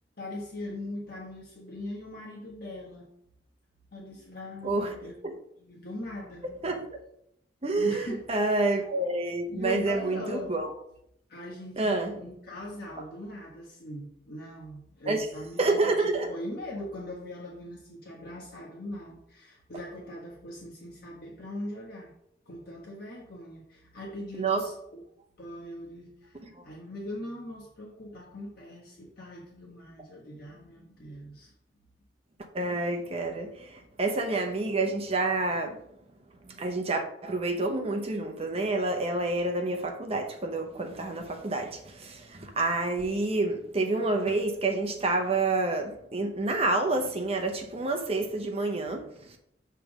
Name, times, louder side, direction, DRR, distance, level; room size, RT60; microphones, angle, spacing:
voice 1, 0.2-3.1 3.9-5.1 5.6-6.5 7.8-8.5 8.8-9.0 9.5-10.6 11.3-22.1 22.4-25.0 25.4-31.5, left 1 dB, 55° left, 1.4 m, -40 dB
voice 2, 7.6-10.7 11.8-12.1 15.1-15.3 15.6-16.3 24.4-24.6 26.4-26.5 32.5-35.8 36.5-49.4, right 2 dB, 30° right, 0.8 m, -28 dB
6.8 x 3.4 x 6.1 m
head